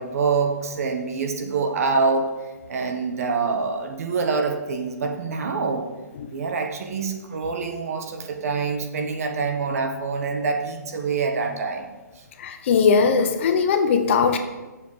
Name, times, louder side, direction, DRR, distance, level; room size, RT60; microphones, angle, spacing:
voice 1, 0.0-2.3 2.7-5.9 6.3-11.9, right 4 dB, 55° right, 5 dB, 1.3 m, -25 dB
voice 2, 12.4-14.4, left 5 dB, 40° left, 7 dB, 0.8 m, -19 dB
8.1 x 7.1 x 5.0 m, 1.2 s
hypercardioid pair, 160°, 10 cm